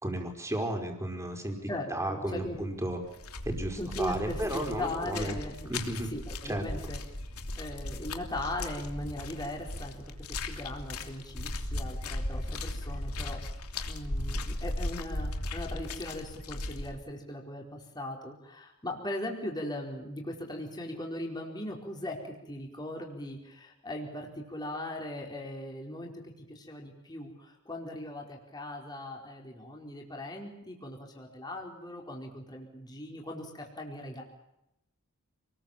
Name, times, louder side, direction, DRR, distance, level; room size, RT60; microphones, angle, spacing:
voice 1, 0.0-1.6 1.9-3.0 3.4-5.4 5.7-6.1 6.4-6.7, right 1 dB, 15° right, 4 dB, 5.0 m, -33 dB
voice 2, 1.7-2.6 3.8-5.8 6.0-7.0 7.5-10.0 10.4-13.6 13.9-34.2, left 1 dB, 20° left, 0 dB, 4.7 m, -39 dB
sound 1, 2.3-2.6 2.9-16.9, left 1 dB, 80° left, 3.0 m, -37 dB
29.0 x 21.0 x 7.5 m, 0.86 s
head